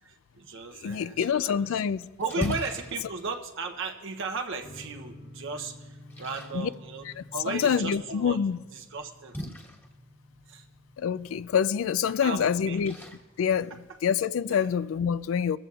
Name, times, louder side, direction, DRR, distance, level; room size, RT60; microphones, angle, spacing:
voice 1, 0.0-1.8 2.2-7.1 7.3-8.4 8.7-9.4 10.5-10.7 12.1-12.8 13.7-14.0 14.5-14.7, right 4 dB, 65° right, 0.7 m, -36 dB
voice 2, 0.8-2.0 2.4-2.5 6.5-6.7 7.5-8.6 11.0-12.9 13.4-13.7 14.0-15.6, left 7 dB, 75° left, 0.3 m, -26 dB
Splash splatter, 1.6-14.3, equal, 10° left, 1.2 m, -44 dB
sound 1, 4.6-13.6, left 1 dB, 55° left, 1.2 m, -51 dB
21.0 x 14.5 x 2.4 m
head